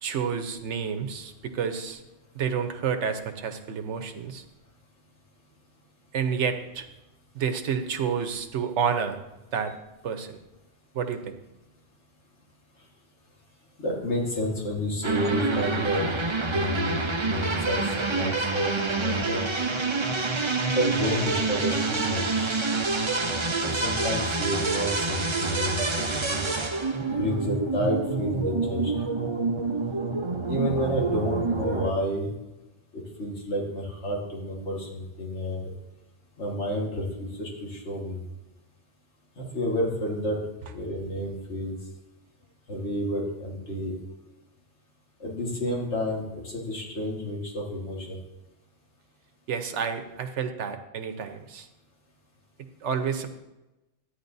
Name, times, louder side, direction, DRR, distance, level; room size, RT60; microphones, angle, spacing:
voice 1, 0.0-2.0 2.3-4.4 6.1-6.9 7.3-9.2 9.5-9.7 10.0-10.4 10.9-11.3 49.5-51.7 52.8-53.3, right 7 dB, 70° right, 7 dB, 1.1 m, -29 dB
voice 2, 13.8-16.1 16.4-19.5 20.7-22.5 23.6-29.3 30.5-32.3 32.9-35.6 36.4-38.2 39.5-40.4 40.7-41.7 42.7-43.9 45.2-48.2, equal, 65° left, -2 dB, 2.0 m, -30 dB
sound 1, 15.0-31.9, right 3 dB, 30° right, 0.6 m, -27 dB
13.0 x 9.7 x 2.7 m, 1.0 s
omnidirectional pair, 1.2 m